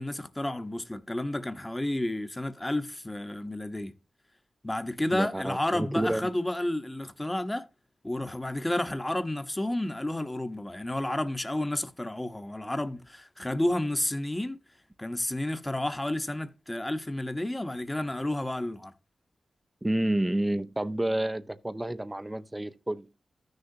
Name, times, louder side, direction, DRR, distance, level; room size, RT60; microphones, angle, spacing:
voice 1, 0.0-3.9 4.6-7.7 8.0-14.6 15.0-18.9, left 1 dB, 15° left, 1.0 m, -31 dB
voice 2, 5.1-6.3 19.8-23.1, right 1 dB, 15° right, 0.6 m, -29 dB
14.0 x 6.5 x 2.7 m
cardioid pair, 60°, 0 cm